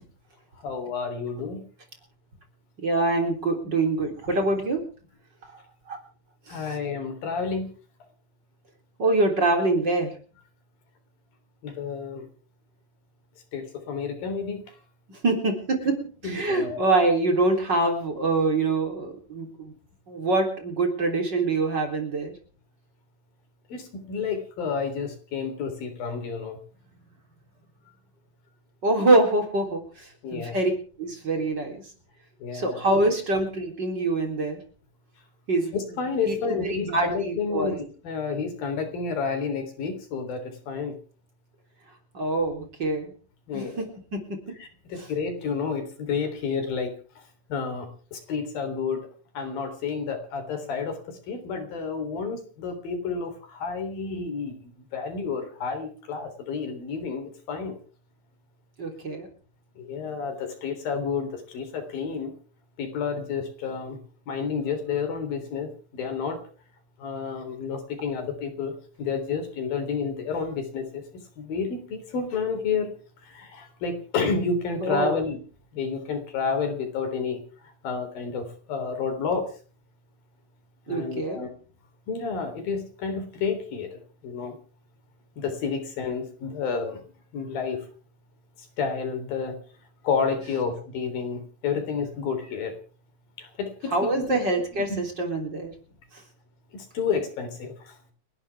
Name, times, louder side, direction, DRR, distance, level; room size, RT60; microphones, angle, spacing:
voice 1, 0.6-1.6 6.5-7.7 11.6-12.3 13.5-14.6 16.2-16.9 23.7-26.6 30.2-30.6 32.4-32.8 35.7-37.8 38.0-41.0 43.5-43.8 44.6-46.9 47.5-49.1 49.4-51.0 51.3-54.6 54.9-57.8 59.8-62.3 62.8-64.0 64.3-66.4 67.0-71.0 71.4-72.9 73.4-75.4 75.7-77.4 77.8-79.5 80.9-81.5 82.1-84.6 85.4-87.0 87.3-87.8 88.8-89.6 90.0-92.7 93.4-94.4 94.9-95.0 96.7-97.7, left 5 dB, 90° left, 6 dB, 5.4 m, -30 dB
voice 2, 2.8-4.8 5.9-6.0 6.5-6.7 9.0-10.1 15.1-19.7 20.1-22.3 28.8-30.7 31.0-31.8 32.5-34.6 35.5-35.7 36.2-37.8 42.1-43.1 43.5-44.4 45.0-45.1 58.8-59.3 74.8-75.2 80.9-81.4 93.9-95.7, right 2 dB, 30° right, 3 dB, 3.9 m, -25 dB
30.0 x 12.0 x 3.5 m, 0.40 s
omnidirectional pair, 4.0 m